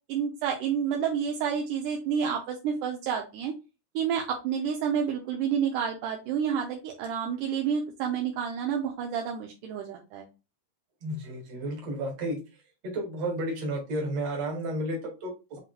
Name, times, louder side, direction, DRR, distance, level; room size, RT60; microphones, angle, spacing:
voice 1, 0.1-3.5 4.0-10.3, right 7 dB, 80° right, 2 dB, 2.2 m, -29 dB
voice 2, 11.0-12.4 12.8-15.6, right 1 dB, 55° right, 0 dB, 2.5 m, -32 dB
7.5 x 3.0 x 2.2 m, 0.28 s
omnidirectional pair, 3.8 m